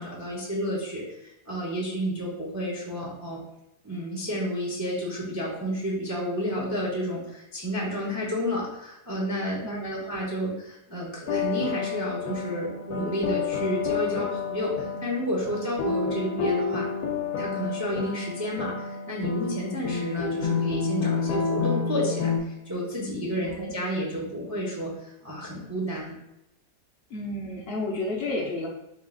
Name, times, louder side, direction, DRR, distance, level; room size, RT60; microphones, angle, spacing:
voice 1, 0.0-3.4 3.8-16.9 17.4-26.1, equal, 20° right, -4 dB, 0.4 m, -31 dB
voice 2, 9.6-10.1 23.4-23.7 27.1-28.7, left 2 dB, 55° left, -2 dB, 0.7 m, -32 dB
sound 1, 11.3-22.4, left 5 dB, 70° left, 1.1 m, -29 dB
3.8 x 2.4 x 3.8 m, 0.87 s
omnidirectional pair, 1.8 m